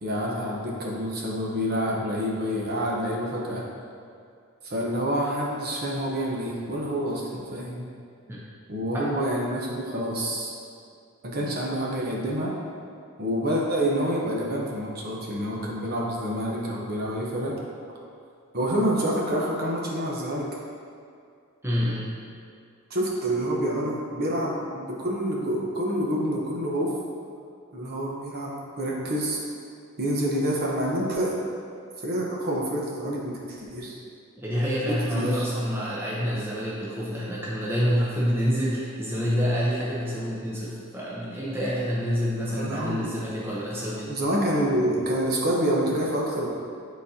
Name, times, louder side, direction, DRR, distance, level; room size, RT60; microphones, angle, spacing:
voice 1, 0.0-3.6 4.6-7.9 8.7-10.5 11.2-12.5 13.2-17.5 18.5-20.5 22.9-26.9 27.7-29.4 30.0-31.4 32.0-34.0 34.8-35.5 42.5-43.2 44.1-46.5, equal, 45° right, -3 dB, 0.9 m, -27 dB
voice 2, 21.6-22.1 34.4-44.1, equal, 10° right, -7 dB, 0.7 m, -27 dB
9.1 x 4.1 x 2.8 m, 2.3 s
head